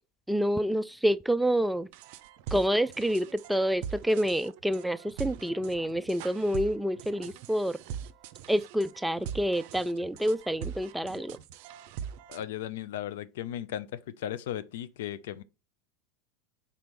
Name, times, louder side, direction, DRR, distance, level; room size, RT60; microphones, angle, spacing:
voice 1, 0.3-1.9 2.5-7.8 8.5-11.4, equal, 5° right, 0.4 m, -28 dB
sound 1, 1.9-12.4, right 8 dB, 60° right, 0.5 m, -42 dB
voice 2, 12.3-13.9 14.2-15.4, left 11 dB, 70° left, 0.5 m, -36 dB
4.4 x 4.2 x 5.2 m
hypercardioid pair, 85°, 0 cm